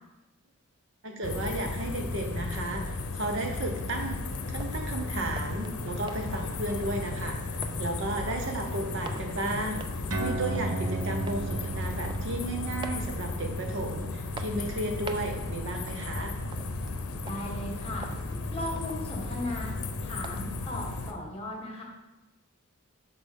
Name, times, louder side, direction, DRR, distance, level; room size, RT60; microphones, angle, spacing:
voice 1, 1.0-4.2 4.5-9.9 10.2-16.3, right 1 dB, 55° right, 3 dB, 1.0 m, -34 dB
sound 1, 1.2-21.1, left 3 dB, 80° left, 0.7 m, -35 dB
sound 2, 2.7-20.7, right 3 dB, 20° right, 0.3 m, -49 dB
sound 3, 10.1-17.0, right 3 dB, 90° right, 0.9 m, -37 dB
voice 2, 17.2-18.1 18.5-19.7 20.0-21.8, left 1 dB, 25° left, -1 dB, 1.5 m, -37 dB
8.2 x 5.9 x 3.6 m, 1.0 s
head